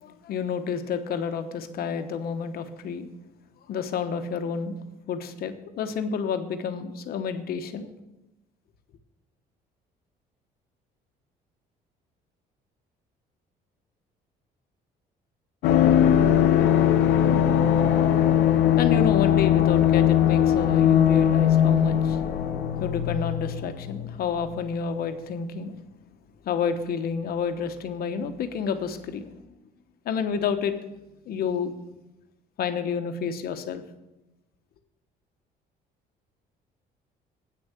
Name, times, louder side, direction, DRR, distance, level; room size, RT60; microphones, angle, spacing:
voice 1, 0.0-3.1 3.7-4.8 5.1-7.9 18.8-22.2 22.8-25.7 26.4-29.4 30.0-30.8 31.3-31.7 32.6-33.8, left 6 dB, 65° left, 8 dB, 1.1 m, -29 dB
sound 1, 15.6-24.2 24.4-24.5, left 10 dB, 85° left, 0.7 m, -20 dB
8.7 x 6.4 x 7.4 m, 0.97 s
cardioid pair, 110°, 17 cm